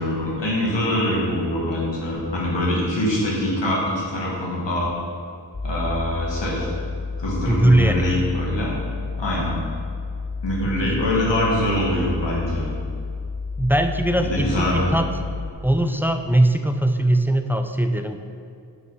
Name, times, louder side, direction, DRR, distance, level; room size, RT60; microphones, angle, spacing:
voice 1, 0.0-4.9 5.6-6.7 7.2-8.7 9.2-9.6 10.4-12.7 14.2-14.9, left 1 dB, 90° left, -5 dB, 2.1 m, -23 dB
sound 1, 5.5-15.5, left 4 dB, 30° left, 1.0 m, -30 dB
voice 2, 7.5-8.0 13.6-15.1 15.6-18.2, right 1 dB, 5° right, 6 dB, 0.5 m, -20 dB
7.8 x 5.2 x 5.6 m, 2.4 s
wide cardioid pair, 65°, 43 cm